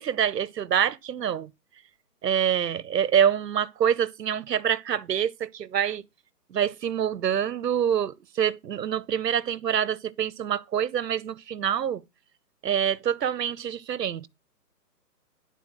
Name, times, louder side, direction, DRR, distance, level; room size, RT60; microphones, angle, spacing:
voice 1, 0.0-1.5 2.2-6.0 6.5-12.0 12.6-14.3, right 9 dB, 80° right, 0.9 m, -26 dB
11.0 x 4.1 x 6.2 m
hypercardioid pair, 165°, 48 cm